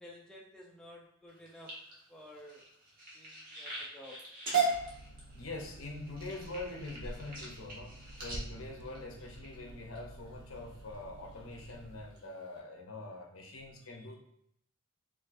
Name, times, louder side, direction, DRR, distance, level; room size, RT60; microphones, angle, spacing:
voice 1, 0.0-1.8 2.1-2.7 3.1-4.3, left 1 dB, 5° left, -3 dB, 0.4 m, -52 dB
sound 1, 1.3-10.0 10.6-10.9 11.3-11.7 12.1-12.2 12.6-12.7, right 4 dB, 40° right, 1.1 m, -38 dB
sound 2, 4.7-12.0, right 1 dB, 90° right, 0.5 m, -49 dB
voice 2, 5.3-14.2, left 2 dB, 85° left, 1 dB, 0.7 m, -44 dB
4.1 x 2.5 x 2.5 m, 0.70 s
head